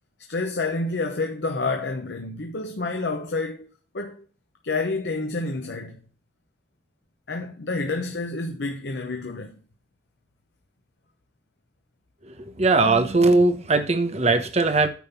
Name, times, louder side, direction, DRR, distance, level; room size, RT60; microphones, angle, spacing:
voice 1, 0.3-3.7 3.9-4.3 4.6-6.0 7.3-9.5, left 3 dB, 70° left, 0.9 m, -29 dB
voice 2, 12.2-14.9, right 3 dB, 40° right, 1.1 m, -20 dB
9.4 x 3.9 x 6.8 m
head